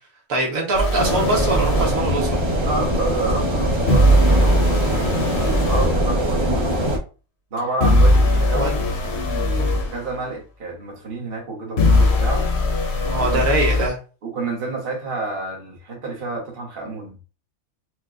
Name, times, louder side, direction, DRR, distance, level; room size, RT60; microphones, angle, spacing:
voice 1, 0.3-2.4 4.9-5.1 5.5-5.6 6.8-6.9 8.5-8.7 9.5-9.7 13.0-14.0, right 2 dB, 70° right, 1.4 m, -23 dB
sound 1, 0.7-2.0 3.9-6.0 7.8-9.9 11.8-13.9, left 1 dB, 55° left, 0.9 m, -19 dB
sound 2, 1.0-7.0, equal, 30° right, 0.6 m, -22 dB
voice 2, 2.6-6.8 7.5-12.5 13.2-13.5 14.2-17.2, right 3 dB, 45° right, 1.2 m, -29 dB
4.5 x 2.3 x 2.4 m
omnidirectional pair, 1.5 m